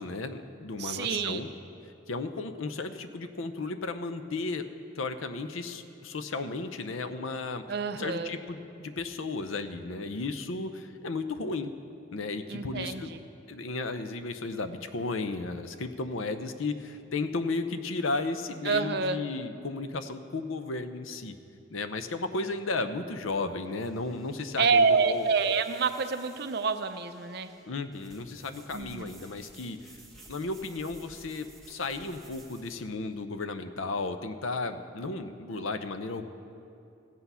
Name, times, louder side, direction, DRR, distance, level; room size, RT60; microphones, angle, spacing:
voice 1, 0.0-1.5 1.8-4.7 5.0-7.6 7.9-11.7 12.1-13.1 13.5-21.4 21.7-25.3 27.7-30.0 30.3-36.3, left 3 dB, 80° left, 9 dB, 0.7 m, -34 dB
voice 2, 0.8-1.4 7.7-8.3 12.5-13.2 18.6-19.2 24.6-27.5 28.7-29.1, right 5 dB, 50° right, 9 dB, 0.5 m, -27 dB
sound 1, 23.5-32.9, right 2 dB, ahead, 1.2 m, -55 dB
15.0 x 8.2 x 5.6 m, 2.6 s
head